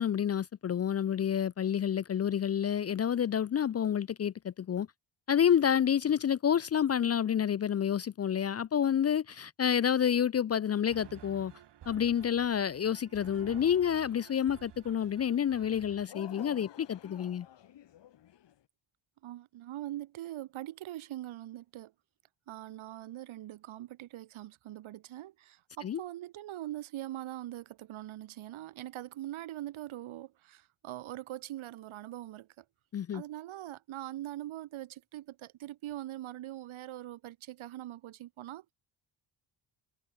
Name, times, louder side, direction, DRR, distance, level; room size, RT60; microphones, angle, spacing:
voice 1, 0.0-4.9 5.3-11.5 11.9-17.5 25.8-26.0 32.9-33.2, left 9 dB, 30° left, 0.5 m, -29 dB
sound 1, 10.9-16.1, right 11 dB, 55° right, 2.2 m, -53 dB
sound 2, 13.2-14.4 16.1-18.6, left 11 dB, 55° left, 3.8 m, -52 dB
voice 2, 19.2-21.9 22.5-32.6 33.1-38.7, right 14 dB, 70° right, 1.9 m, -42 dB
cardioid pair, 165°, 49 cm